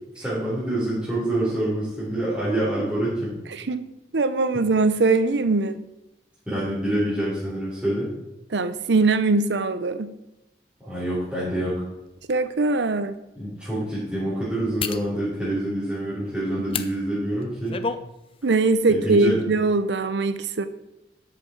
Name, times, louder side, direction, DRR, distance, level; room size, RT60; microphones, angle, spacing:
voice 1, 0.1-3.4 6.5-8.1 10.8-11.8 13.4-17.8 18.9-19.4, right 1 dB, 5° right, -11 dB, 4.3 m, -26 dB
voice 2, 3.7-5.8 8.5-10.1 12.3-13.1 16.7-16.8 18.4-20.7, right 3 dB, 85° right, 12 dB, 0.7 m, -22 dB
sound 1, 12.0-12.1 12.7-12.8 14.8-15.1 16.7-16.9 17.4-18.0 18.4-18.6, left 5 dB, 30° left, 0.5 m, -29 dB
12.5 x 8.3 x 4.6 m, 0.94 s
head